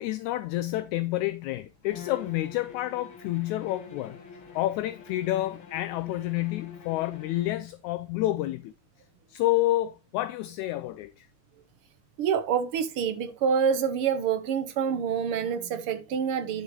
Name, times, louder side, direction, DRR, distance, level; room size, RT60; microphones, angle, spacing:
voice 1, 0.0-4.2 4.5-8.7 9.3-11.3, left 16 dB, 80° left, 1.8 m, -29 dB
Bowed string instrument, 1.8-7.7, left 6 dB, 50° left, 2.1 m, -46 dB
voice 2, 12.2-16.6, right 7 dB, 70° right, 1.3 m, -27 dB
11.5 x 6.1 x 3.1 m
omnidirectional pair, 3.7 m